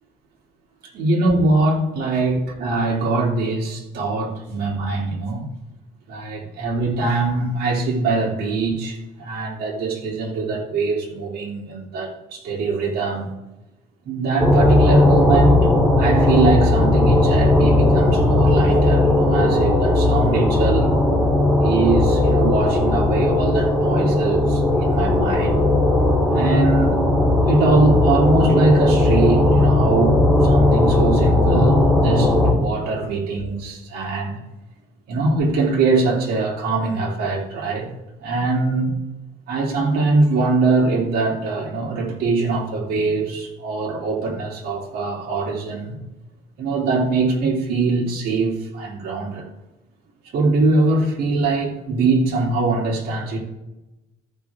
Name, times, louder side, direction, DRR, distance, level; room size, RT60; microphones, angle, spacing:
voice 1, 0.9-5.4 6.1-13.3 14.0-15.7 16.0-20.9 21.6-25.6 26.3-27.0 27.5-34.4 35.1-37.9 38.2-38.9 39.5-46.0 46.6-49.4 50.3-53.4, right 3 dB, 65° right, -4 dB, 2.9 m, -22 dB
sound 1, 14.4-32.5, left 2 dB, 5° right, 2.4 m, -17 dB
14.5 x 5.6 x 3.6 m, 0.99 s
cardioid pair, 110°, 17 cm